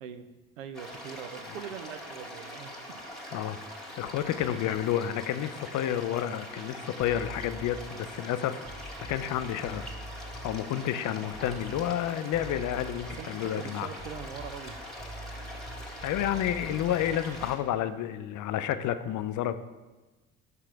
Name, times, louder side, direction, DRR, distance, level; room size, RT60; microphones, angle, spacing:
voice 1, 0.0-3.0 13.2-14.8, right 8 dB, 90° right, 9 dB, 0.5 m, -42 dB
sound 1, 0.7-17.6, equal, ahead, 1.7 m, -43 dB
voice 2, 4.0-8.6 9.0-10.0 10.4-13.9 16.0-19.6, left 11 dB, 55° left, 12 dB, 0.5 m, -30 dB
sound 2, 7.0-8.0 8.6-10.5 11.3-12.0 12.3-13.3 13.9-17.6, right 1 dB, 20° right, 1.1 m, -44 dB
5.8 x 5.8 x 4.6 m, 1.2 s
hypercardioid pair, 55°, 37 cm